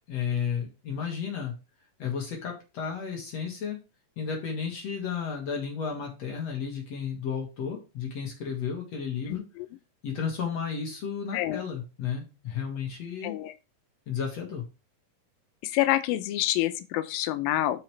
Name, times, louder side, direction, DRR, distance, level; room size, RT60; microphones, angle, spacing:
voice 1, 0.1-1.5 2.0-3.8 4.2-9.4 10.0-13.4 14.1-14.7, left 7 dB, 55° left, 2.6 m, -33 dB
voice 2, 9.3-9.7 11.3-11.6 13.2-13.5 15.6-17.8, left 14 dB, 90° left, 2.4 m, -27 dB
12.5 x 4.9 x 3.2 m
omnidirectional pair, 4.1 m